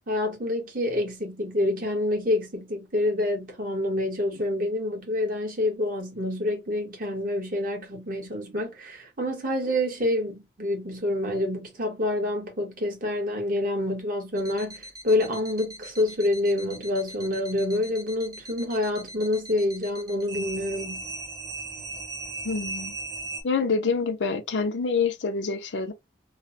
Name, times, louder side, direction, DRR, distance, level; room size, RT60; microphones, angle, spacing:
voice 1, 0.1-21.0, left 1 dB, 55° right, 1.2 m, -27 dB
sound 1, 14.4-23.4, right 2 dB, 20° right, 0.8 m, -39 dB
voice 2, 22.4-22.9 23.4-25.9, left 4 dB, 80° left, 0.6 m, -26 dB
3.1 x 2.0 x 2.6 m
head